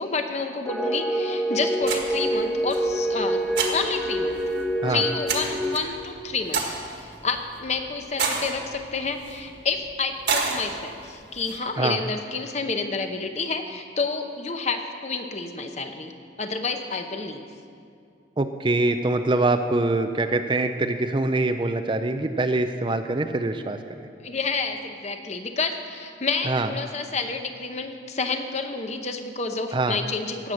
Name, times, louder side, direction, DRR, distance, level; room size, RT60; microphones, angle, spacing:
voice 1, 0.0-4.4 4.9-16.1 16.4-17.4 24.2-30.5, left 4 dB, 35° left, 6 dB, 0.8 m, -29 dB
sound 1, 0.6-5.8, right 1 dB, ahead, 1.0 m, -26 dB
sound 2, 1.8-11.6, right 4 dB, 60° right, 1.7 m, -32 dB
voice 2, 18.4-24.1 26.5-26.7 29.7-30.0, right 2 dB, 25° right, 8 dB, 0.4 m, -24 dB
17.0 x 7.5 x 6.4 m, 2.3 s
head